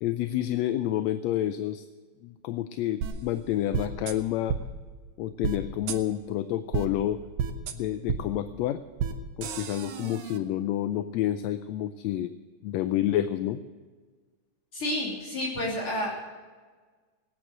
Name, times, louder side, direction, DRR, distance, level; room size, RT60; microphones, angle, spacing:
voice 1, 0.0-1.9 2.2-4.6 5.2-7.2 7.7-8.8 9.4-12.3 12.6-13.6, left 12 dB, 80° left, 11 dB, 1.7 m, -29 dB
sound 1, 3.0-3.1 3.7-4.1 4.5-4.6 5.4-5.6 5.9-6.0 6.7-6.9 7.4-7.7 8.1-8.2 9.0-9.1 9.4-10.4, right 8 dB, 90° right, 2.4 m, -30 dB
voice 2, 14.7-16.1, left 1 dB, 50° left, -5 dB, 4.3 m, -30 dB
18.0 x 9.4 x 7.7 m, 1.4 s
omnidirectional pair, 3.3 m